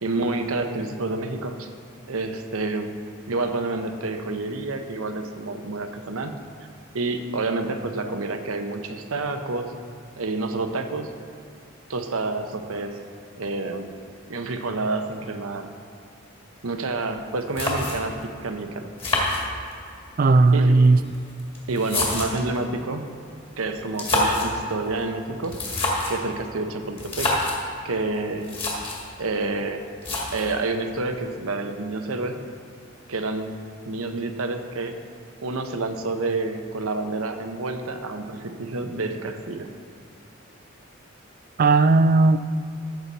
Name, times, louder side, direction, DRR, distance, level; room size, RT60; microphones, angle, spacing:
voice 1, 0.0-1.7 2.1-3.0 3.3-6.4 6.9-9.7 10.2-11.1 11.9-13.0 13.4-13.9 14.3-15.7 16.6-18.9 20.5-20.8 21.7-23.1 23.6-25.5 26.1-27.3 27.8-28.6 29.2-29.8 30.3-32.4 33.1-33.5 33.9-34.9 35.4-39.7, right 3 dB, 85° right, 6 dB, 0.8 m, -28 dB
sound 1, 17.2-17.3 17.6-18.2 19.0-20.0 20.9-22.6 23.8-24.6 25.4-26.2 27.0-27.6 28.1-28.2 28.4-29.1 30.0-30.6, left 2 dB, 25° left, 2.0 m, -26 dB
voice 2, 20.2-21.0 41.6-42.4, right 3 dB, 40° right, 12 dB, 0.3 m, -16 dB
14.5 x 6.9 x 4.1 m, 2.4 s
head